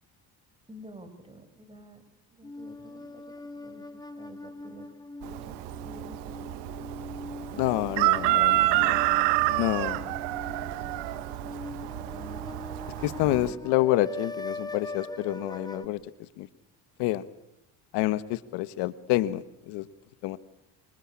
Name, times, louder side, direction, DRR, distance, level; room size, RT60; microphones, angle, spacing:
voice 1, 0.7-2.0 2.3-4.9 5.3-6.5 7.5-8.1 8.7-9.6 12.2-12.6 13.2-13.5, right 1 dB, 15° right, 9 dB, 5.5 m, -49 dB
sound 1, 2.4-15.9, left 2 dB, 10° left, 2.3 m, -42 dB
Chicken rooster, 5.2-13.5, right 19 dB, 90° right, 1.4 m, -28 dB
voice 2, 7.6-10.2 13.0-16.0 16.4-16.5 17.0-17.2 17.9-19.9 20.2-20.4, left 16 dB, 90° left, 15 dB, 1.5 m, -28 dB
26.5 x 25.5 x 8.7 m, 0.90 s
cardioid pair, 110°, 40 cm